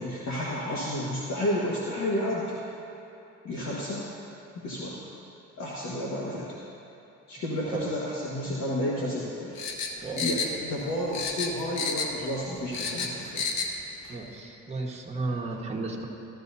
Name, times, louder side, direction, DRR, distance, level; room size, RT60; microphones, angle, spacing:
voice 1, 0.0-2.6 3.4-4.1 4.5-5.0 5.6-6.6 7.3-9.6 10.1-13.5, left 1 dB, 60° left, -6 dB, 1.6 m, -31 dB
sound 1, 9.5-10.9 11.1-12.3 12.5-13.7 14.0-14.1, left 5 dB, 90° left, 1.0 m, -31 dB
voice 2, 14.1-16.1, right 3 dB, 20° right, -3 dB, 1.5 m, -33 dB
14.5 x 13.0 x 2.7 m, 2.9 s
cardioid pair, 90°, 30 cm